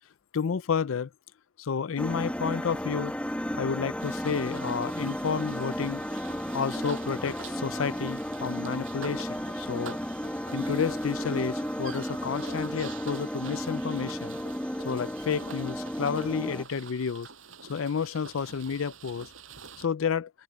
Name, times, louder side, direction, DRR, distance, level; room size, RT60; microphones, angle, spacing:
voice 1, 0.3-1.1 1.6-3.1 3.5-6.0 6.5-10.0 10.5-14.4 14.8-17.3 17.7-19.3 19.8-20.3, left 6 dB, 80° left, 0.5 m, -31 dB
sound 1, 2.0-16.6, equal, 5° left, 1.4 m, -33 dB
sound 2, 4.0-19.9, right 5 dB, 70° right, 7.2 m, -47 dB
open air
head